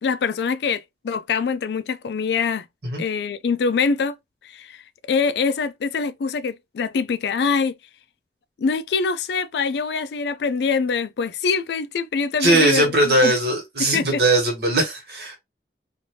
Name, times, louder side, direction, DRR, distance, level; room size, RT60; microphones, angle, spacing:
voice 1, 0.0-2.7 3.0-4.2 4.4-4.8 5.1-7.7 8.6-13.3 13.8-14.2, left 5 dB, 75° left, 0.3 m, -24 dB
voice 2, 12.4-15.4, right 1 dB, 70° right, 1.4 m, -19 dB
2.7 x 2.5 x 3.0 m
head